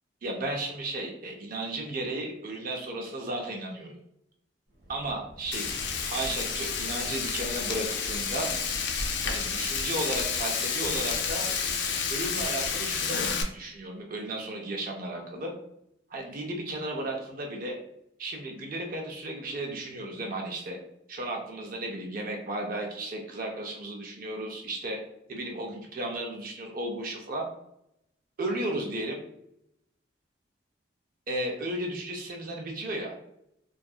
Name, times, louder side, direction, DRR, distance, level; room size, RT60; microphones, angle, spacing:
voice 1, 0.2-4.0 4.9-5.7 6.0-8.5 9.2-11.5 12.1-13.3 13.5-15.5 16.1-17.8 18.2-20.8 21.1-25.0 25.3-27.5 28.4-29.2 31.3-33.1, right 1 dB, 45° right, 1 dB, 0.4 m, -34 dB
Wind, 4.7-9.7, equal, 80° right, 1.0 m, -43 dB
Frying (food), 5.5-13.4, left 6 dB, 65° left, 0.3 m, -30 dB
2.7 x 2.3 x 2.3 m, 0.77 s
head